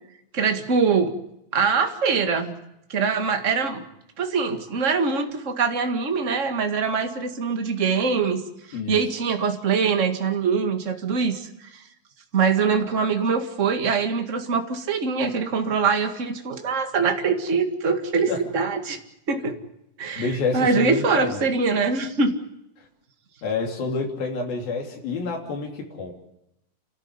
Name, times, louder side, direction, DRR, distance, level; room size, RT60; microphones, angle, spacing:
voice 1, 0.3-1.1 1.5-2.5 2.9-3.8 4.2-8.4 8.7-11.8 12.3-19.0 19.3-19.6 20.0-22.4, right 5 dB, 30° right, 6 dB, 1.5 m, -23 dB
voice 2, 20.2-21.4 23.4-26.1, left 4 dB, 90° left, 2 dB, 4.8 m, -28 dB
29.0 x 13.5 x 9.7 m, 0.84 s
omnidirectional pair, 4.0 m